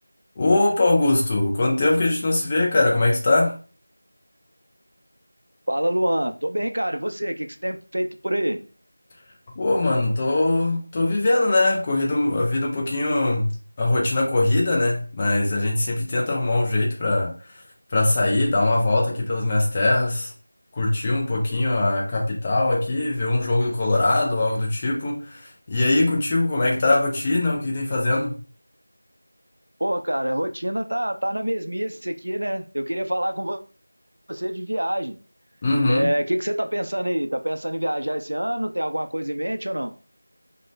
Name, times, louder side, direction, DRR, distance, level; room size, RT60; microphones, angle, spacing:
voice 1, 0.4-3.6 9.6-13.5 13.8-17.6 17.9-20.3 20.7-28.3 35.6-36.1, left 2 dB, 15° left, 0.4 m, -21 dB
voice 2, 5.7-8.6 29.8-33.6 34.3-35.2 35.9-39.9, right 1 dB, 65° right, 0.4 m, -26 dB
2.5 x 2.1 x 3.1 m
figure-of-eight pair, 175°, 0 cm